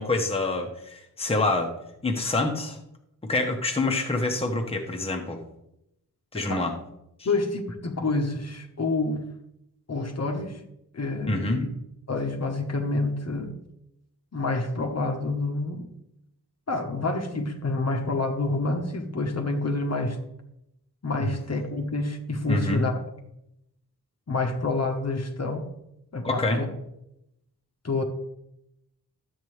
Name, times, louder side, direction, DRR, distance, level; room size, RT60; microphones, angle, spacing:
voice 1, 0.0-1.7 2.0-2.8 3.2-5.4 6.3-6.8 7.2-7.3 11.3-11.6 21.2-21.3 22.5-22.8 26.2-26.6, left 2 dB, 15° left, 2 dB, 1.0 m, -26 dB
voice 2, 7.2-9.3 9.9-10.6 10.9-11.7 12.1-13.5 14.3-15.9 16.7-20.2 21.0-22.9 24.3-25.7 26.1-26.7 27.8-28.0, left 3 dB, 45° left, 3 dB, 1.1 m, -28 dB
12.5 x 8.2 x 3.2 m, 0.83 s
wide cardioid pair, 160°, 38 cm